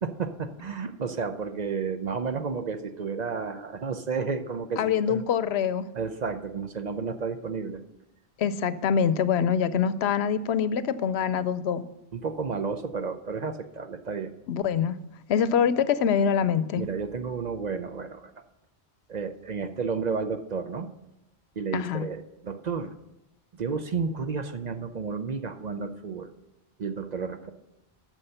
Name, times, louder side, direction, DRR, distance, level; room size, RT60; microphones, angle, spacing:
voice 1, 0.0-5.2 5.9-7.8 12.1-14.3 16.8-18.3 19.1-20.9 21.6-22.9 23.5-26.3 26.8-27.5, right 5 dB, 50° right, 8 dB, 0.6 m, -32 dB
voice 2, 4.8-5.9 8.4-11.8 14.5-15.0 15.3-16.8 21.7-22.1, left 7 dB, 80° left, 14 dB, 0.9 m, -24 dB
9.8 x 6.4 x 6.7 m, 0.90 s
omnidirectional pair, 1.1 m